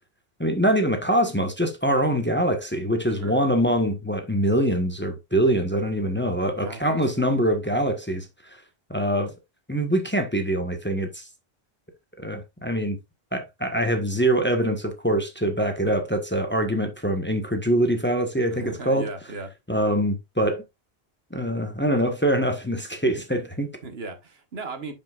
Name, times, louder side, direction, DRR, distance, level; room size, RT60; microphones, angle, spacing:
voice 1, 0.4-8.3 8.9-9.3 9.7-11.2 12.2-13.0 13.3-19.1 19.7-20.6 21.3-23.7, right 1 dB, 10° left, 1.2 m, -24 dB
voice 2, 3.1-3.4 6.5-7.3 18.5-19.5 23.8-24.9, right 3 dB, 70° right, 1.5 m, -37 dB
10.0 x 5.5 x 2.4 m
omnidirectional pair, 1.1 m